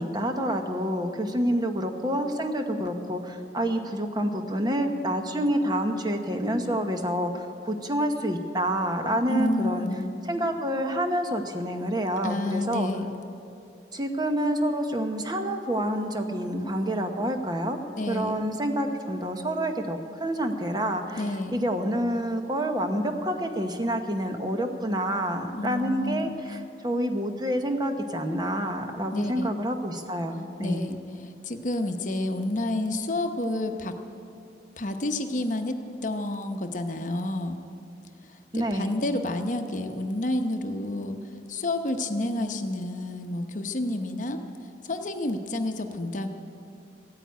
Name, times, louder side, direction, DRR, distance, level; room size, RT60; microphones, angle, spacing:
voice 1, 0.0-9.9 10.2-12.9 13.9-17.8 18.1-30.8 38.5-39.0, equal, 25° right, 5 dB, 1.0 m, -28 dB
voice 2, 9.3-10.1 12.2-13.1 16.6-16.7 18.0-18.4 21.2-21.7 25.5-26.4 29.1-29.5 30.6-33.9 34.8-35.8 36.0-37.6 38.2-41.2 41.5-44.4 44.8-46.3, left 1 dB, 45° left, 6 dB, 0.9 m, -30 dB
14.5 x 9.1 x 9.3 m, 2.5 s
head